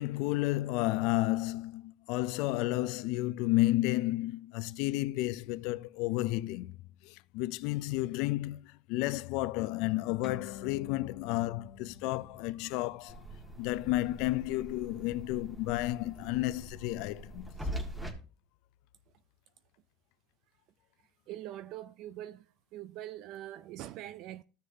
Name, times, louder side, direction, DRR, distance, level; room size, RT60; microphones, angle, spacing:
voice 1, 0.0-6.8 7.0-13.2 13.6-17.5, left 18 dB, 65° left, 0.4 m, -32 dB
sound 1, 10.2-17.1, left 7 dB, 45° left, 1.1 m, -52 dB
sound 2, 13.1-18.1, equal, 10° right, 1.9 m, -43 dB
voice 2, 21.3-22.5 22.7-24.4, right 13 dB, 55° right, 0.5 m, -43 dB
14.0 x 6.5 x 2.8 m
supercardioid pair, 130°, 0 cm